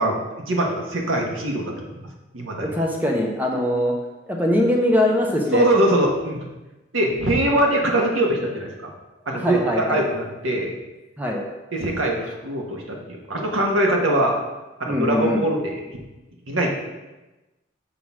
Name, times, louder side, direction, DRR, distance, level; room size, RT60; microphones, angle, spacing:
voice 1, 0.0-2.1 2.3-2.8 5.5-6.4 6.9-8.9 9.3-10.7 11.7-14.3 14.8-15.8 16.5-16.7, right 1 dB, 85° right, 0 dB, 1.4 m, -22 dB
voice 2, 2.6-3.9 4.3-5.6 9.3-10.0 11.2-11.4 14.9-15.4, left 1 dB, 10° right, 0 dB, 1.0 m, -22 dB
6.4 x 4.0 x 6.0 m, 1.1 s
head